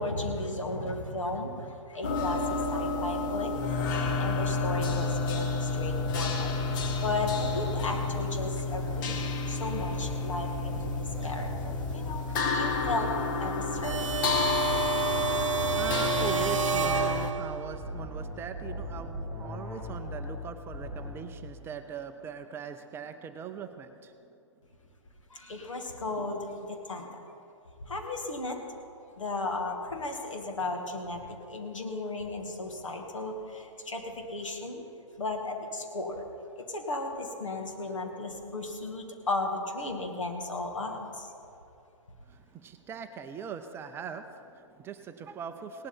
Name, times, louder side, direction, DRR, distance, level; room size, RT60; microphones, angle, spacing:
voice 1, 0.0-14.3 25.3-27.3 27.8-28.6 29.2-34.8 35.2-36.2 36.6-41.3, left 2 dB, 75° left, 3 dB, 2.2 m, -35 dB
sound 1, 2.0-17.3, left 4 dB, 40° left, 1.3 m, -30 dB
sound 2, 3.8-5.3 5.7-8.5 8.7-9.2 9.7-13.3 13.7-16.5 16.7-17.2 17.7-20.5 20.7-21.3, left 1 dB, 20° left, 3.6 m, -38 dB
sound 3, 13.8-17.7, right 7 dB, 75° right, 0.5 m, -30 dB
voice 2, 15.3-24.1 42.3-45.9, right 7 dB, 15° right, 8 dB, 0.5 m, -40 dB
18.0 x 11.5 x 4.4 m, 2.7 s
figure-of-eight pair, 125°, 16 cm